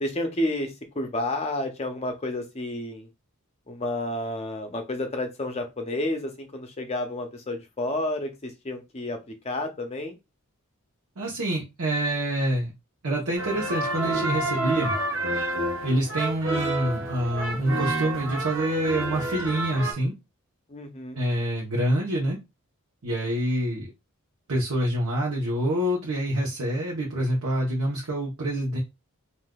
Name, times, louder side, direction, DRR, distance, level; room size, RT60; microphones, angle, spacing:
voice 1, 0.0-3.1 3.7-10.2 20.7-21.2, left 1 dB, 30° left, 5 dB, 0.6 m, -30 dB
voice 2, 11.2-12.7 13.0-14.9 15.8-20.1 21.1-22.4 23.0-23.9 24.5-28.8, right 1 dB, 85° right, -4 dB, 0.9 m, -26 dB
sound 1, 13.3-19.9, right 2 dB, 60° right, 1.1 m, -29 dB
3.6 x 2.5 x 2.3 m, 0.24 s
head